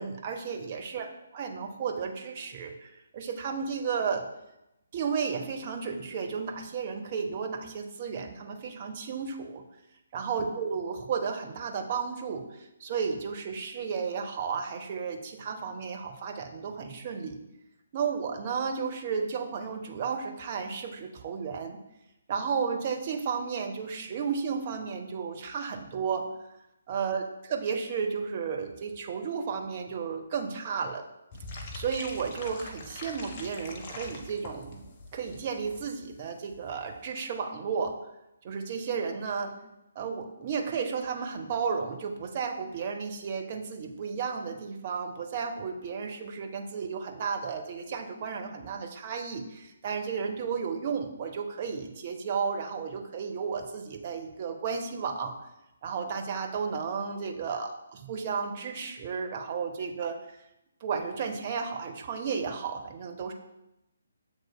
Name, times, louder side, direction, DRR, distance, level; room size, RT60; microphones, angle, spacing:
voice 1, 0.0-1.1 1.3-4.3 4.9-9.6 10.1-17.4 17.9-21.8 22.3-26.3 26.9-27.2 27.5-31.0 31.7-34.8 35.1-38.0 38.4-39.5 40.0-55.3 55.8-60.2 60.8-63.3, right 6 dB, 35° right, 3 dB, 0.5 m, -33 dB
sound 1, 31.3-35.9 36.1-36.2 36.5-36.7 37.0-37.1, left 2 dB, 30° left, 0.6 m, -43 dB
7.4 x 3.0 x 2.2 m, 0.89 s
figure-of-eight pair, 140°, 0 cm